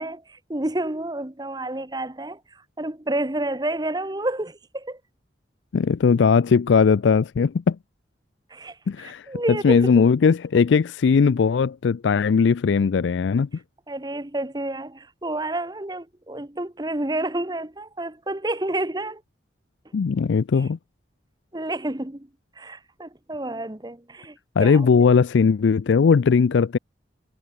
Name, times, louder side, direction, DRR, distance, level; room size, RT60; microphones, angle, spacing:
voice 1, 0.0-5.0 8.5-10.1 13.9-19.2 21.5-22.3 22.6-25.2, right 1 dB, 20° right, 1.0 m, -30 dB
voice 2, 5.7-7.8 8.9-13.5 19.9-20.8 24.6-26.8, left 5 dB, 75° left, 0.4 m, -19 dB
head